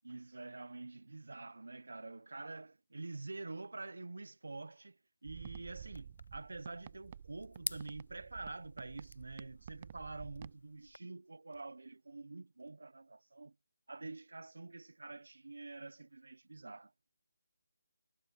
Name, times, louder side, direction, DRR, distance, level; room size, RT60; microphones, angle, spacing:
voice 1, 0.0-13.6 13.9-16.9, right 3 dB, 85° right, 0.8 m, -47 dB
sound 1, 5.2-10.5, right 9 dB, 25° right, 0.3 m, -51 dB
sound 2, 5.9-11.0, left 3 dB, 80° left, 0.4 m, -49 dB
sound 3, 7.8-8.0 9.0-9.2 10.3-10.6 11.5-11.7 12.6-12.8, left 4 dB, 60° left, 4.8 m, -73 dB
figure-of-eight pair, 175°, 0 cm